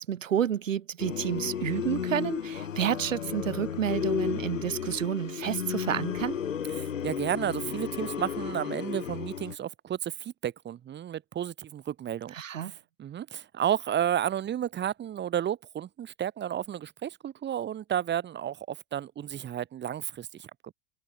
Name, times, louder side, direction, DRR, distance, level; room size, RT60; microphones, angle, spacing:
voice 1, 0.0-6.4 12.3-12.8, right 9 dB, 90° right, 0.9 m, -30 dB
sound 1, 1.0-9.6, left 8 dB, 90° left, 1.1 m, -33 dB
voice 2, 6.8-12.3 13.0-20.5, right 10 dB, 30° right, 0.9 m, -32 dB
hypercardioid pair, 75°, 38 cm